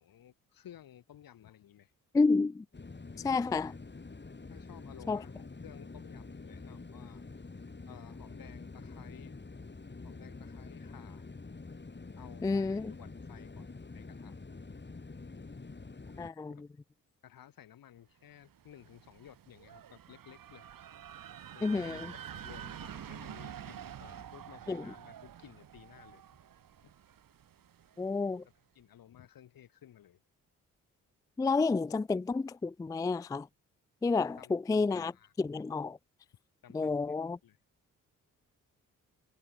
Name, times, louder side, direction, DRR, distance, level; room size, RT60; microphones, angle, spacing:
voice 1, 0.0-1.9 4.5-7.2 7.9-9.4 10.0-11.3 12.2-14.4 16.5-16.6 17.2-20.7 21.5-26.2 28.7-30.2 34.4-35.3 36.6-37.6, left 11 dB, 75° left, 5.7 m, -55 dB
voice 2, 2.1-2.6 3.2-3.7 5.1-5.2 12.4-12.9 16.2-16.5 21.6-22.0 24.7-24.8 28.0-28.4 31.4-33.5 34.0-35.1 35.4-36.0 36.7-37.4, left 4 dB, 10° left, 0.3 m, -30 dB
sound 1, 2.7-16.3, left 3 dB, 30° left, 8.0 m, -47 dB
sound 2, 18.4-28.2, right 9 dB, 70° right, 5.0 m, -48 dB
supercardioid pair, 55°, 35 cm